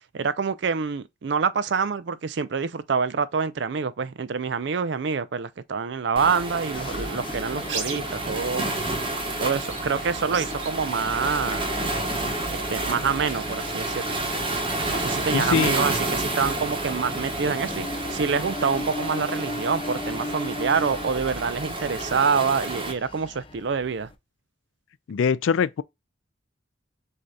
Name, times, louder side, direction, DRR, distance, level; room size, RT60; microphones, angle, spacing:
voice 1, 0.1-8.7 9.4-11.6 12.5-14.2 14.9-24.1, right 5 dB, 65° right, 0.4 m, -26 dB
Waves surf, 6.2-22.9, right 2 dB, 25° right, 1.0 m, -30 dB
sound 1, 6.2-18.8, right 4 dB, 85° right, 1.4 m, -43 dB
sound 2, 6.7-24.1, left 2 dB, 25° left, 0.5 m, -38 dB
voice 2, 15.3-15.8 25.1-25.8, left 6 dB, 85° left, 0.4 m, -23 dB
6.4 x 2.8 x 2.3 m
head